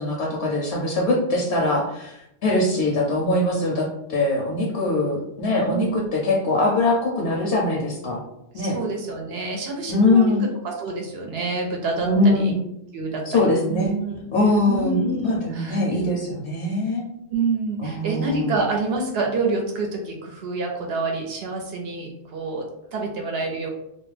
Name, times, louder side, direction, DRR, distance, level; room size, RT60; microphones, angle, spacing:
voice 1, 0.0-8.2 8.5-8.8 9.9-10.4 12.0-12.6 13.3-13.9 14.3-17.0 17.8-18.5, left 2 dB, 70° left, -2 dB, 0.8 m, -22 dB
voice 2, 5.7-6.1 8.5-12.6 12.9-14.3 14.6-16.1 17.3-22.7 22.9-23.7, right 3 dB, 65° right, 1 dB, 0.7 m, -27 dB
2.4 x 2.1 x 3.1 m, 0.81 s
omnidirectional pair, 1.2 m